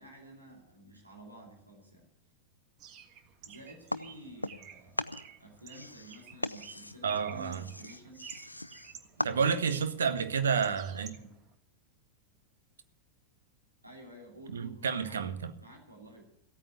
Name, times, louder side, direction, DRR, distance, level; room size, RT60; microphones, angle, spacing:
voice 1, 0.0-2.1 3.5-5.0 5.4-8.3 9.2-9.6 11.1-11.4 13.8-15.2 15.6-16.2, right 1 dB, 85° right, -1 dB, 3.0 m, -51 dB
Bird, 2.8-11.5, right 8 dB, 40° right, 1.6 m, -52 dB
sound 1, 3.9-4.7 5.0-9.8, left 1 dB, 85° left, 0.6 m, -39 dB
voice 2, 7.0-7.6 9.2-11.2 14.5-15.5, right 6 dB, 65° right, 11 dB, 1.2 m, -30 dB
15.5 x 9.0 x 8.3 m, 0.70 s
figure-of-eight pair, 90°, 0 cm